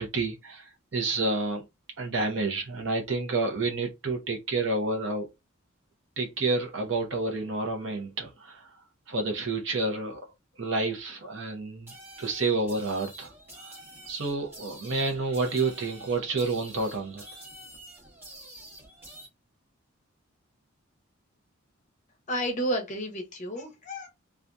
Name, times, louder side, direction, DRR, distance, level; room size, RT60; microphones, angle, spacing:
voice 1, 0.0-1.6 2.0-5.3 6.2-8.7 9.1-10.2 10.6-11.9 12.2-13.3 13.7-13.8 14.1-17.4, right 3 dB, 60° right, 0.7 m, -29 dB
sound 1, 11.9-19.3, right 1 dB, 10° right, 0.9 m, -48 dB
voice 2, 22.3-24.1, equal, 35° left, 0.7 m, -31 dB
2.6 x 2.3 x 2.2 m
head